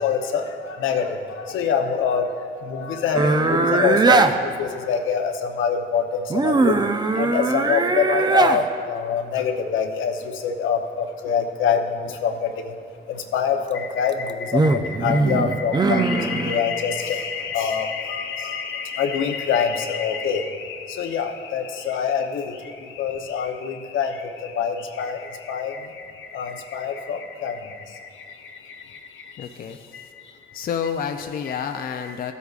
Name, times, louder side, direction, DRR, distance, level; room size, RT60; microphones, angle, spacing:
voice 1, 0.0-2.3 2.6-6.8 7.2-12.7 13.1-28.1 28.7-28.8 29.9-30.1 31.5-31.6, left 7 dB, 80° left, 4 dB, 0.8 m, -25 dB
sound 1, 3.1-4.3 6.3-8.6 13.9-16.6, right 3 dB, 20° right, 0.5 m, -20 dB
voice 2, 29.4-30.0 30.5-32.3, left 7 dB, 50° left, 6 dB, 0.5 m, -29 dB
14.5 x 8.2 x 2.4 m, 2.4 s
cardioid pair, 90°, 20 cm